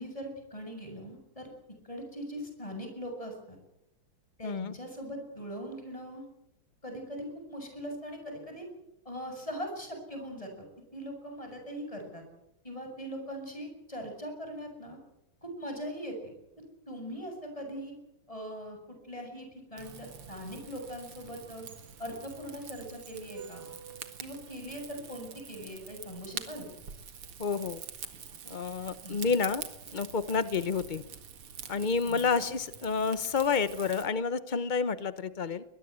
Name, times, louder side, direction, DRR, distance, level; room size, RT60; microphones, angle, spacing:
voice 1, 0.0-1.5 1.8-3.6 4.4-6.3 6.8-8.7 9.1-10.7 10.9-12.2 12.6-15.0 15.4-16.3 16.9-18.0 18.3-21.7 22.0-23.7 24.2-26.7 29.0-29.4 32.0-32.5, equal, 15° left, 4 dB, 7.5 m, -41 dB
voice 2, 4.4-4.7 27.4-27.8 28.5-29.6 29.9-31.0 31.7-35.6, left 5 dB, 90° left, 13 dB, 0.4 m, -29 dB
Rain / Fire, 19.8-34.1, right 7 dB, 85° right, 2.8 m, -46 dB
22.5 x 21.5 x 8.3 m, 0.86 s
omnidirectional pair, 2.4 m